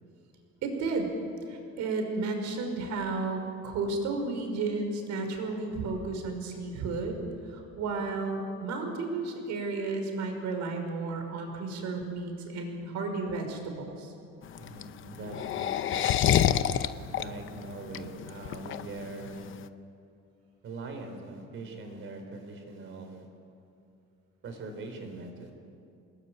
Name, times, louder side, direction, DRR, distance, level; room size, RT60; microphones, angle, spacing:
voice 1, 0.6-1.1 1.5-7.2 7.5-14.1, right 3 dB, 70° right, 4 dB, 5.6 m, -33 dB
sound 1, 14.4-19.6, left 10 dB, 45° left, 0.8 m, -27 dB
voice 2, 14.6-16.5 17.1-19.5 20.6-23.3 24.4-25.5, right 2 dB, 45° right, 5 dB, 4.5 m, -42 dB
28.0 x 20.5 x 9.3 m, 2.6 s
cardioid pair, 180°, 29 cm